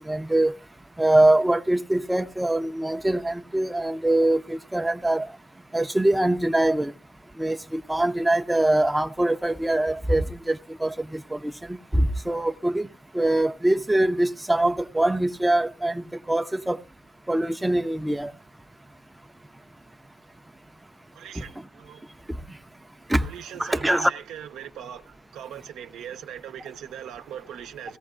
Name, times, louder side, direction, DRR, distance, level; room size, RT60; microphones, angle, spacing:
voice 1, 0.1-0.6 1.0-5.3 5.7-6.9 7.4-12.9 13.1-16.8 17.3-18.3 23.1-23.3 23.6-24.1, right 1 dB, 10° right, 0.5 m, -23 dB
voice 2, 21.1-22.1 23.2-28.0, right 9 dB, 85° right, 0.8 m, -40 dB
17.0 x 14.0 x 2.5 m
cardioid pair, 90°, 0 cm